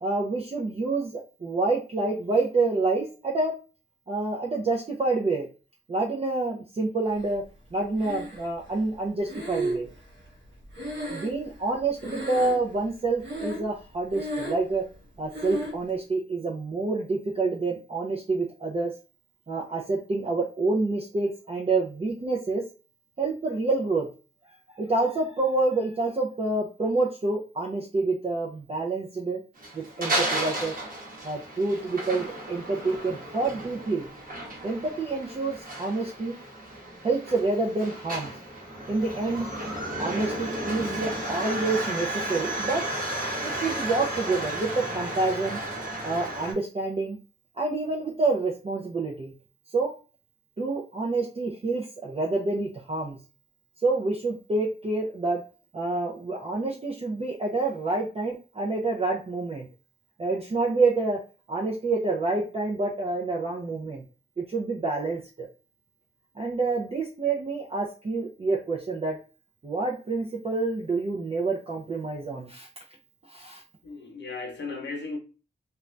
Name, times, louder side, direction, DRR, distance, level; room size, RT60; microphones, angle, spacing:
voice 1, 0.0-3.6 4.1-5.5 5.9-7.4 7.7-9.9 11.1-14.8 15.2-18.9 19.5-22.6 23.2-24.1 24.5-29.4 29.7-30.7 31.2-34.1 34.6-36.4 37.0-38.3 38.9-39.5 40.0-42.8 43.4-45.6 46.0-47.2 47.6-49.3 49.7-49.9 50.6-53.2 53.8-55.4 55.7-59.7 60.2-61.2 61.5-64.0 64.4-65.5 66.4-69.2 69.6-72.7 73.3-73.6, right 3 dB, 30° right, 0.5 m, -27 dB
Breathing, 8.0-8.7 9.3-11.7 12.0-12.8 13.2-13.8 14.1-14.7 15.3-15.8, right 1 dB, 80° right, 1.0 m, -33 dB
sound 1, 29.6-46.5, right 1 dB, 50° right, 1.0 m, -33 dB
voice 2, 73.8-75.2, left 3 dB, 75° left, 0.8 m, -35 dB
2.5 x 2.2 x 3.1 m
wide cardioid pair, 130°, 19 cm